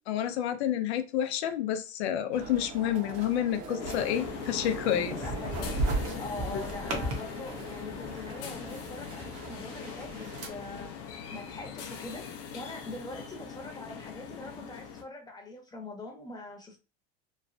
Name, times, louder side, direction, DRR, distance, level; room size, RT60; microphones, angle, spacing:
voice 1, 0.1-5.2 6.5-6.6 6.9-7.0, left 10 dB, 90° left, 0.6 m, -29 dB
sound 1, 2.3-10.5, right 2 dB, 50° right, 0.9 m, -37 dB
sound 2, 3.8-15.0, left 7 dB, 45° left, 0.6 m, -41 dB
voice 2, 5.1-5.8 6.2-10.9 11.3-12.3 12.5-16.8, left 2 dB, 10° left, 0.8 m, -43 dB
3.1 x 2.1 x 2.6 m
supercardioid pair, 110°, 32 cm